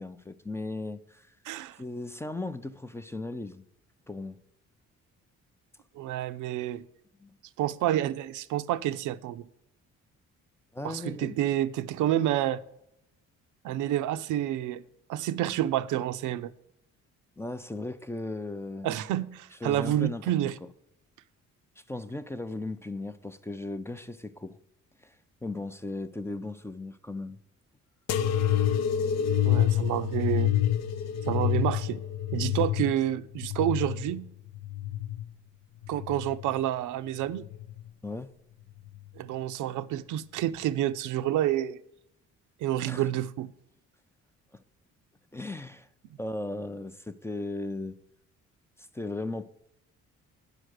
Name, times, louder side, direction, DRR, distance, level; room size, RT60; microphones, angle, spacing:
voice 1, 0.0-1.3 1.8-3.6 4.1-4.4 7.2-7.3 10.7-11.4 17.4-18.9 19.6-20.3 21.8-24.6 25.0-27.4 38.0-38.4 42.9-43.1 45.3-45.9 46.2-48.0 48.8-49.5, left 2 dB, 10° left, 0.4 m, -37 dB
voice 2, 1.5-1.8 6.0-6.8 7.6-9.5 10.8-12.6 13.6-14.8 15.1-16.5 18.8-20.5 29.4-30.6 31.3-32.0 32.3-34.3 35.9-37.5 39.2-41.8 42.6-43.5, right 12 dB, 85° right, 0.5 m, -29 dB
sound 1, 28.1-35.3 35.8-36.6 37.4-37.9 38.9-39.0, left 11 dB, 60° left, 0.5 m, -28 dB
9.8 x 4.9 x 6.4 m
cardioid pair, 90°, 30 cm